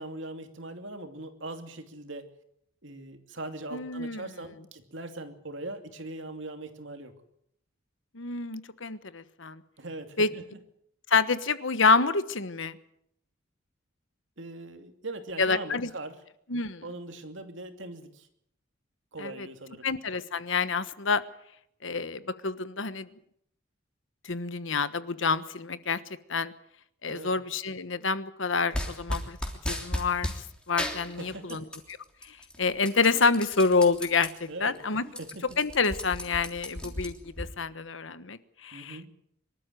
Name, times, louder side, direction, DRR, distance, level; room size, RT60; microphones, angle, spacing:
voice 1, 0.0-2.3 2.8-7.1 9.8-10.4 14.4-16.2 16.8-18.3 19.1-19.9 27.1-27.4 31.2-31.6 34.5-34.8 35.2-35.6 38.7-39.1, right 2 dB, 70° right, 6 dB, 2.7 m, -40 dB
voice 2, 3.7-4.2 8.1-9.6 10.2-10.3 11.1-12.7 15.4-15.9 16.5-16.8 19.2-19.5 19.8-21.2 21.8-23.1 24.2-26.0 26.3-26.5 27.0-29.4 29.7-31.6 32.3-35.0 35.6-39.1, left 4 dB, 75° left, 13 dB, 1.3 m, -28 dB
sound 1, 28.7-30.4 30.8-31.9 32.2-34.3 34.7-34.8 35.0-37.5, left 1 dB, 5° left, 3.3 m, -34 dB
24.5 x 13.0 x 9.2 m, 0.74 s
head